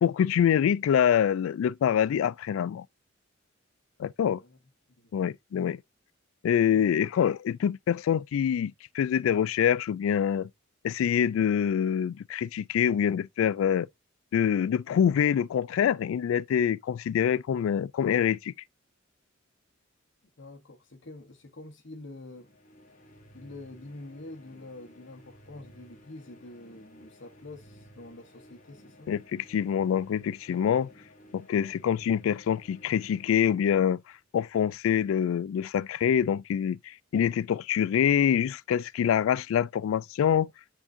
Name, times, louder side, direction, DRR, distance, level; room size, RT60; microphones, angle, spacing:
voice 1, 0.0-2.8 4.0-4.4 5.1-5.8 6.4-10.5 10.8-13.9 14.3-18.5 29.1-30.9 31.3-34.0 34.3-40.5, left 8 dB, 90° left, 0.3 m, -25 dB
voice 2, 4.2-4.6 4.9-5.1 6.7-7.1 20.4-22.5 23.3-29.1, left 2 dB, 65° left, 1.0 m, -46 dB
sound 1, 22.2-34.1, equal, 40° left, 1.7 m, -55 dB
10.0 x 3.7 x 2.5 m
head